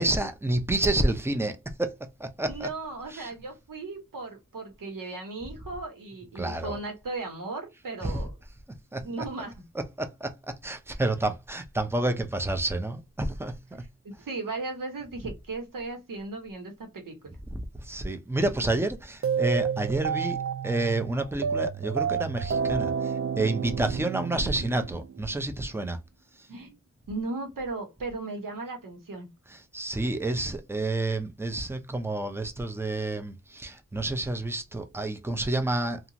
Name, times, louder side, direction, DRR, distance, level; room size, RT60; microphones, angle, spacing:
voice 1, 0.0-1.9 2.2-2.7 3.1-3.3 6.4-6.8 8.0-8.2 8.9-9.3 9.7-13.5 15.2-15.3 17.5-20.4 20.6-26.0 26.4-26.5 29.5-36.1, right 2 dB, 10° right, 0.6 m, -29 dB
voice 2, 2.4-8.3 9.0-9.5 14.0-17.2 26.5-26.8 27.1-29.3, right 3 dB, 85° right, 1.2 m, -36 dB
sound 1, 19.2-25.4, right 7 dB, 45° right, 0.4 m, -30 dB
2.8 x 2.5 x 2.6 m
cardioid pair, 60°, 32 cm